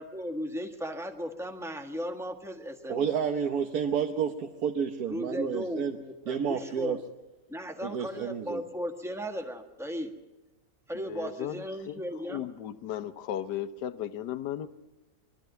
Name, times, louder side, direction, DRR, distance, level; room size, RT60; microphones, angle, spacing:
voice 1, 0.0-3.1 5.1-7.0 7.5-10.1 10.9-12.4, equal, ahead, 4 dB, 1.4 m, -36 dB
voice 2, 2.9-6.0 6.3-7.0 7.8-8.6, right 7 dB, 65° right, 4 dB, 1.4 m, -30 dB
voice 3, 11.1-14.7, left 11 dB, 75° left, 12 dB, 1.4 m, -36 dB
21.5 x 13.0 x 9.2 m, 1.1 s
omnidirectional pair, 1.9 m